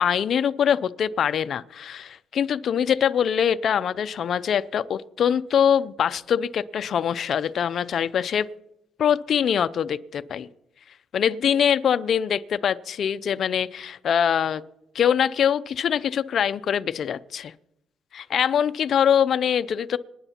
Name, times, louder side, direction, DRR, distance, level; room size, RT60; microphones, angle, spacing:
voice 1, 0.0-8.5 9.0-10.5 11.1-14.6 14.9-17.5 18.1-20.0, left 8 dB, 55° left, 13 dB, 0.4 m, -23 dB
26.0 x 9.9 x 2.9 m, 0.84 s
cardioid pair, 110°, 0 cm